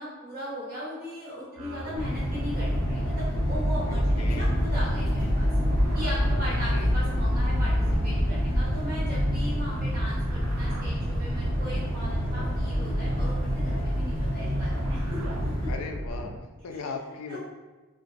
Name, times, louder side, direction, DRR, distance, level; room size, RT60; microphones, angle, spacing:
voice 1, 0.0-5.5 5.9-7.7 8.0-15.0 15.4-15.7 16.7-16.8 17.3-17.4, equal, 40° right, -10 dB, 0.9 m, -38 dB
sound 1, 1.6-16.4, right 1 dB, 85° right, 0.5 m, -38 dB
sound 2, 1.9-15.7, equal, 25° left, 0.9 m, -27 dB
voice 2, 3.9-4.6 6.7-7.0 15.7-16.3 16.6-17.4, left 4 dB, 75° left, 4 dB, 0.4 m, -37 dB
3.0 x 2.4 x 2.4 m, 1.2 s
head